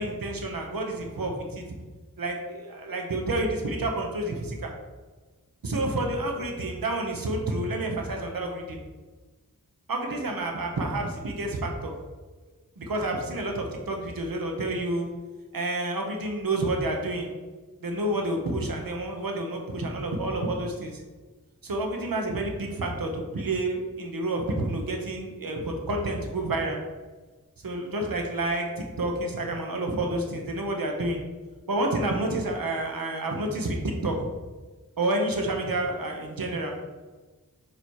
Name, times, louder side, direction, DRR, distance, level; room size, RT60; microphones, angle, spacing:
voice 1, 0.0-1.6 2.2-4.7 5.6-8.8 9.9-11.9 12.8-15.1 15.5-17.3 17.8-21.0 21.6-26.8 27.6-31.2 31.7-34.3 35.0-36.7, right 2 dB, 80° right, 2 dB, 1.1 m, -29 dB
6.9 x 3.2 x 4.7 m, 1.3 s
wide cardioid pair, 85°, 34 cm